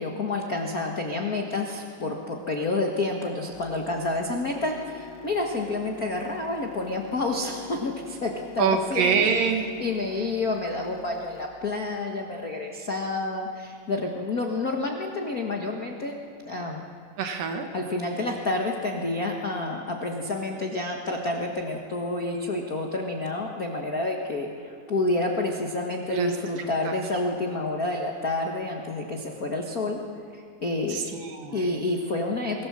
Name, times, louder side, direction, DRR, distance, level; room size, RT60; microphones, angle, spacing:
voice 1, 0.0-9.3 9.8-16.2 16.4-16.8 17.7-30.0 30.3-31.0 31.5-32.7, left 2 dB, 45° left, 1 dB, 1.1 m, -29 dB
sound 1, 3.5-11.5, left 8 dB, 80° left, 3.1 m, -46 dB
voice 2, 8.6-9.7 17.2-17.7 26.1-26.3 26.6-27.0 30.9-31.7, right 6 dB, 80° right, 4 dB, 3.1 m, -26 dB
25.0 x 16.5 x 7.4 m, 2.4 s
omnidirectional pair, 3.9 m